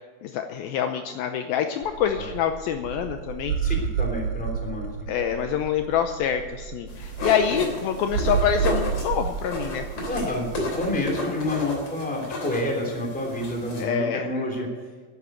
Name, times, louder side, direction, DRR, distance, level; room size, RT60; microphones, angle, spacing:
voice 1, 0.2-3.6 5.1-10.3 13.8-14.3, left 8 dB, 80° left, 6 dB, 2.3 m, -26 dB
sound 1, 1.8-11.0, right 7 dB, 80° right, 1.9 m, -31 dB
voice 2, 3.6-5.1 10.1-10.5 10.8-14.7, left 1 dB, 5° left, 0 dB, 2.3 m, -29 dB
sound 2, 6.9-13.9, left 1 dB, 35° left, 3.6 m, -33 dB
11.0 x 11.0 x 8.0 m, 1.4 s
omnidirectional pair, 4.7 m